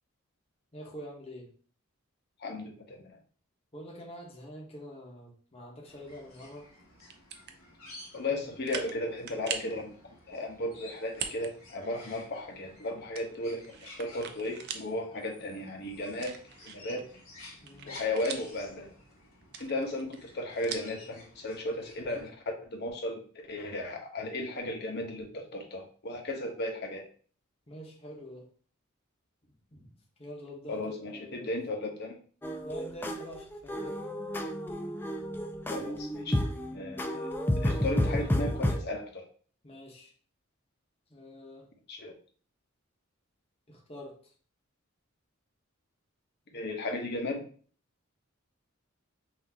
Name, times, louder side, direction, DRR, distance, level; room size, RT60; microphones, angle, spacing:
voice 1, 0.7-1.5 3.7-6.7 17.6-18.0 27.7-28.5 29.4-31.5 32.6-34.0 39.6-40.1 41.1-41.7 43.7-44.3, equal, 30° left, -2 dB, 1.0 m, -46 dB
voice 2, 2.4-3.2 8.1-10.0 10.3-16.4 16.6-17.0 17.8-18.9 19.6-22.3 22.7-23.2 23.5-27.1 30.7-32.1 35.7-36.4 36.7-37.3 37.6-39.2 41.9-42.1 46.5-47.4, left 1 dB, 50° left, 1 dB, 0.9 m, -35 dB
sound 1, 5.9-22.3, left 2 dB, 80° left, 1.7 m, -53 dB
sound 2, 7.0-7.6 8.1-8.2 8.6-9.0 9.3-9.8 11.1-11.5 11.9-12.0 13.1-14.9 15.3-15.4 16.1-17.0 17.4-18.7 19.4-21.0, right 7 dB, 50° right, 0.5 m, -40 dB
sound 3, 32.4-38.8, left 1 dB, 10° left, 0.3 m, -31 dB
5.9 x 2.7 x 2.7 m, 0.43 s
head